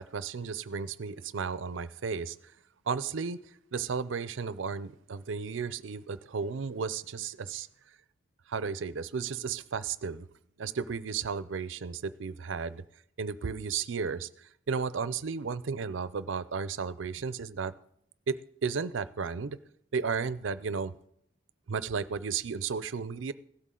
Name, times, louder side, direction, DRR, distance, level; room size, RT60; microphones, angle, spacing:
voice 1, 0.0-2.4 2.9-3.4 3.7-7.7 8.5-10.3 10.6-12.8 13.2-14.3 14.7-17.7 18.3-18.4 18.6-19.6 19.9-20.9 21.7-23.3, right 5 dB, 70° right, 16 dB, 0.5 m, -33 dB
16.0 x 12.5 x 3.8 m, 0.73 s
head